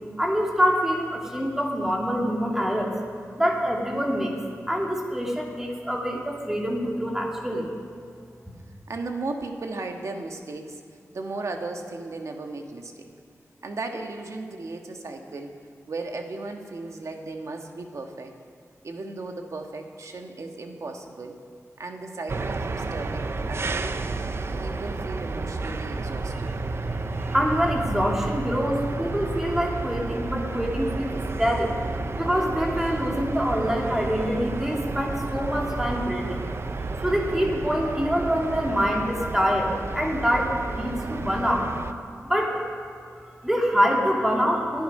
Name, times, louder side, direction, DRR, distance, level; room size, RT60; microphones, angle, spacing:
voice 1, 0.2-3.0 3.4-4.3 4.7-7.7 27.2-31.7 32.2-36.4 37.0-41.7 42.2-42.6 43.2-44.8, equal, 10° right, -1 dB, 2.6 m, -25 dB
voice 2, 8.9-10.8 11.1-13.1 13.6-15.5 15.9-18.3 18.8-21.3 21.8-24.0 24.6-26.5, right 3 dB, 65° right, 4 dB, 1.6 m, -35 dB
sound 1, 22.3-41.9, right 3 dB, 45° right, 0.7 m, -31 dB
21.0 x 12.5 x 5.5 m, 2.1 s
wide cardioid pair, 110°, 6 cm